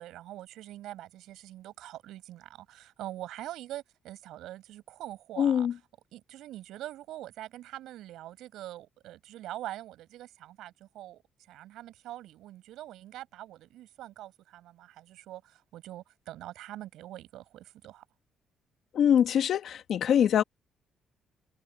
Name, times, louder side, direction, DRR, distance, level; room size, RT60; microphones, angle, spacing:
voice 1, 0.0-5.7 6.1-11.2 11.5-18.0, right 14 dB, 85° right, 7.6 m, -44 dB
voice 2, 5.4-5.7 18.9-20.4, left 9 dB, 70° left, 1.8 m, -23 dB
cardioid pair, 90°, 0 cm